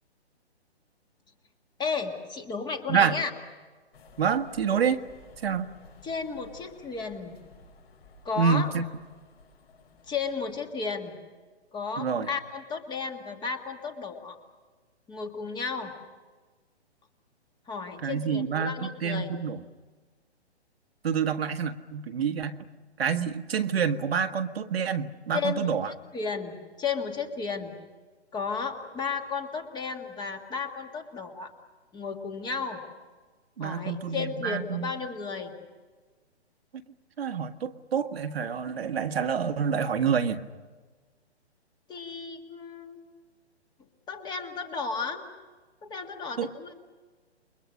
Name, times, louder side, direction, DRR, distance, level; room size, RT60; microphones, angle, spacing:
voice 1, 1.8-3.3 6.0-7.4 8.2-8.7 10.1-11.2 11.7-14.4 15.1-15.9 17.7-19.3 25.3-27.7 28.3-31.5 31.9-32.8 33.6-35.5 41.9-43.0 44.1-45.2 45.8-46.7, left 5 dB, 15° left, 5 dB, 1.9 m, -33 dB
voice 2, 2.9-3.2 4.2-5.0 5.4-5.7 8.4-8.8 12.0-12.3 18.0-19.6 21.0-22.7 23.0-25.9 33.6-34.9 37.2-40.4 46.4-46.5, right 7 dB, 65° right, 7 dB, 1.6 m, -27 dB
sound 1, 3.9-10.9, left 3 dB, 65° left, 7.0 m, -55 dB
29.0 x 23.0 x 6.4 m, 1.4 s
hypercardioid pair, 140°, 33 cm